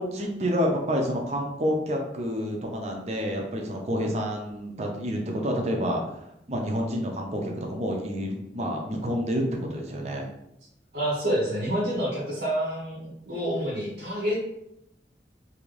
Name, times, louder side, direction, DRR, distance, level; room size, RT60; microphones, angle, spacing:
voice 1, 0.0-6.0 6.5-10.3, equal, 40° right, 1 dB, 0.5 m, -28 dB
voice 2, 10.9-14.4, equal, 80° right, -5 dB, 0.8 m, -28 dB
2.7 x 2.5 x 3.1 m, 0.81 s
head